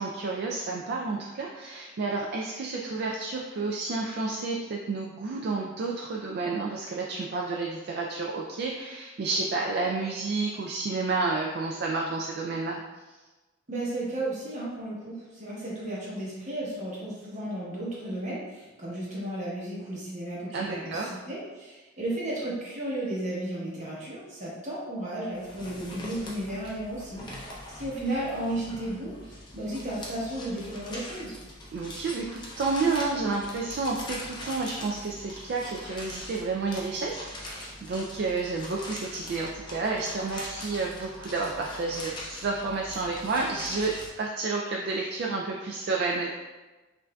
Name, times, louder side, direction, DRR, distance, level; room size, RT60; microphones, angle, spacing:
voice 1, 0.0-12.8 20.5-21.2 31.7-46.3, right 3 dB, 55° right, -1 dB, 0.3 m, -30 dB
voice 2, 13.7-31.3, right 1 dB, 35° right, -6 dB, 1.1 m, -34 dB
sound 1, 25.4-44.1, left 1 dB, 25° left, 0.5 m, -42 dB
5.5 x 2.6 x 2.2 m, 1.2 s
head